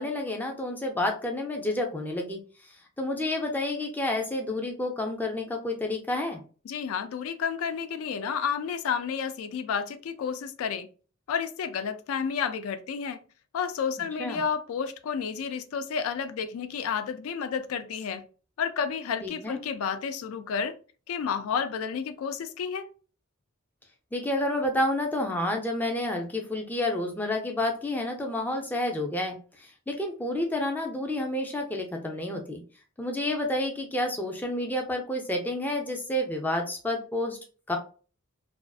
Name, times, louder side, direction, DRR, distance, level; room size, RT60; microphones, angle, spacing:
voice 1, 0.0-2.7 3.0-6.4 14.2-14.4 19.2-19.6 24.1-32.6 33.0-37.4 37.7-37.8, left 1 dB, 10° left, 0.4 m, -30 dB
voice 2, 6.7-10.9 11.3-13.2 13.5-18.2 18.6-20.8 21.1-22.9, left 6 dB, 85° left, 0.3 m, -31 dB
2.4 x 2.4 x 2.3 m
head